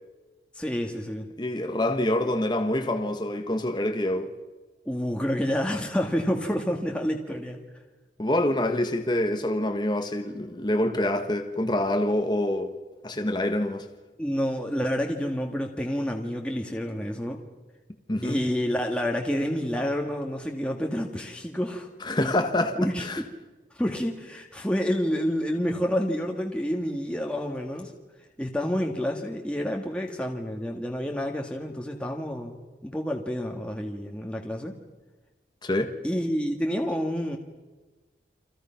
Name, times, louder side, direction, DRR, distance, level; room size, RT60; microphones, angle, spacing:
voice 1, 0.5-1.3 4.9-7.6 14.2-17.4 18.2-21.9 22.8-23.3 23.7-27.9 28.4-34.7 36.0-37.4, equal, 5° left, 1.9 m, -29 dB
voice 2, 1.4-4.3 8.2-12.7 13.0-13.9 18.1-18.4 22.0-23.2 35.6-35.9, left 1 dB, 25° left, 1.3 m, -26 dB
30.0 x 25.5 x 5.9 m
head